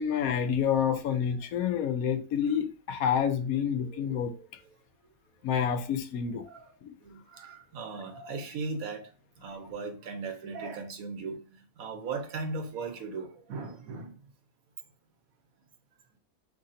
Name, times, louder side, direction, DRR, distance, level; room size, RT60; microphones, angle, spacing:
voice 1, 0.0-4.3 5.4-6.4 6.8-6.9, left 8 dB, 85° left, 1.1 m, -28 dB
voice 2, 3.8-4.5 6.4-6.7 7.0-9.1 9.4-11.4 11.8-14.1, right 4 dB, 80° right, 1.3 m, -38 dB
3.8 x 3.3 x 4.0 m
omnidirectional pair, 1.5 m